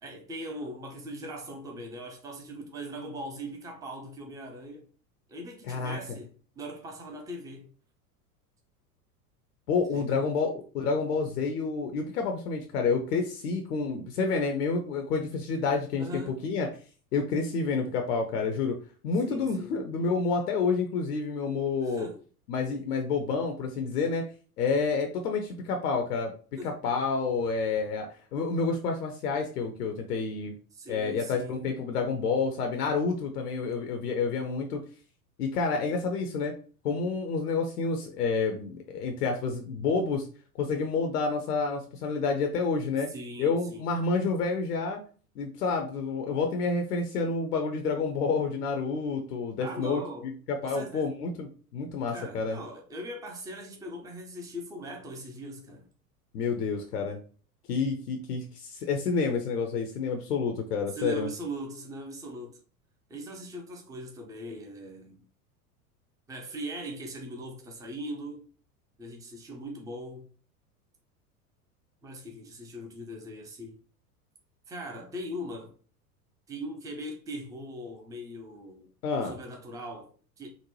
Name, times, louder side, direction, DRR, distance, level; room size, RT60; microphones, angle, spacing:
voice 1, 0.0-4.9 5.3-7.7 9.9-10.3 16.0-16.4 19.2-19.8 21.8-22.2 26.6-26.8 30.7-31.8 43.1-43.9 49.6-50.3 50.6-51.1 52.1-55.9 60.9-62.6 63.1-65.2 66.3-68.4 69.0-70.3 72.0-73.8 74.7-75.8 76.5-78.9 79.3-80.5, equal, 10° right, 0.5 m, -40 dB
voice 2, 5.7-6.0 9.7-16.7 17.1-18.8 19.0-22.1 22.5-24.2 24.6-26.3 26.8-30.5 30.9-34.8 35.4-36.5 36.8-40.3 40.6-43.1 43.4-45.0 45.4-50.0 50.5-52.6 56.3-57.2 57.7-61.3 79.0-79.4, left 4 dB, 75° left, 0.7 m, -29 dB
3.9 x 2.1 x 3.1 m
hypercardioid pair, 85°, 46 cm